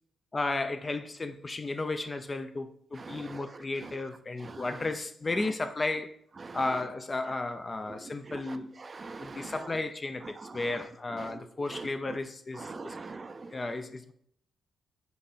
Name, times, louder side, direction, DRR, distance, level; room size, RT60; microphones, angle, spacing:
voice 1, 0.3-6.2 6.5-8.7 9.2-13.0 13.5-14.1, left 2 dB, 35° left, 0.4 m, -34 dB
voice 2, 3.0-3.4 4.4-4.6 6.4-6.6 8.3-9.5 11.2-11.3 11.7-11.9 12.6-13.5, right 3 dB, 40° right, 0.4 m, -43 dB
3.9 x 3.4 x 3.7 m
hypercardioid pair, 45°, 0 cm